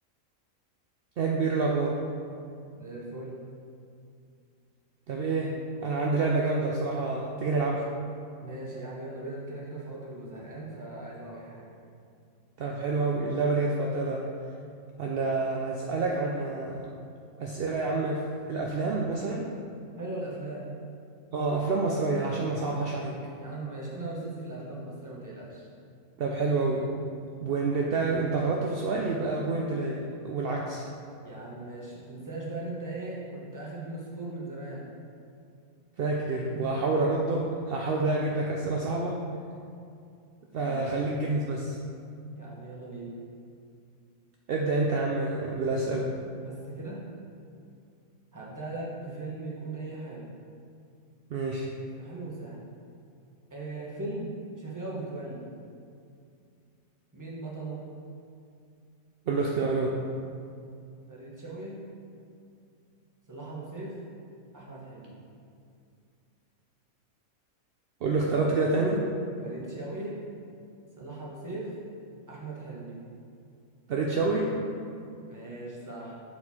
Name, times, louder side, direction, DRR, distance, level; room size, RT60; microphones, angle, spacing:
voice 1, 1.2-2.0 5.1-5.6 5.8-7.9 12.6-14.2 15.0-16.9 17.4-18.2 18.5-19.5 21.3-23.1 26.2-26.9 27.4-30.8 36.0-39.2 40.5-41.8 44.5-46.1 51.3-51.7 59.3-60.0 68.0-69.1 73.9-74.5, right 3 dB, 65° right, -1 dB, 0.6 m, -28 dB
voice 2, 2.7-3.3 8.4-11.7 20.0-20.7 23.3-25.7 31.2-34.9 40.6-40.9 42.3-43.2 46.4-47.0 48.3-50.3 51.9-52.6 53.5-55.5 57.1-57.8 61.1-61.8 63.3-64.0 64.5-65.2 69.4-70.2 71.0-71.7 72.3-73.0 75.3-76.1, right 2 dB, 15° right, -5 dB, 1.0 m, -39 dB
6.5 x 4.4 x 4.2 m, 2.4 s
omnidirectional pair, 1.5 m